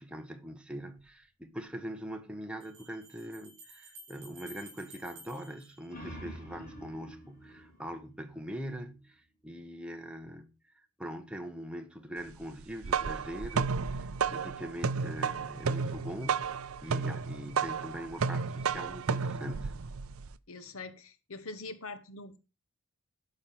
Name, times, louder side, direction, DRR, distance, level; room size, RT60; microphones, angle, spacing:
voice 1, 0.0-10.5 11.0-19.8, equal, 5° right, 1.1 m, -42 dB
sound 1, 1.0-1.1 2.6-6.6, right 2 dB, 35° right, 6.0 m, -54 dB
sound 2, 5.6-9.1, equal, 35° left, 4.1 m, -48 dB
sound 3, 12.6-20.3, right 5 dB, 75° right, 0.5 m, -32 dB
voice 2, 20.5-22.4, left 3 dB, 70° left, 1.2 m, -43 dB
12.0 x 5.6 x 5.8 m
head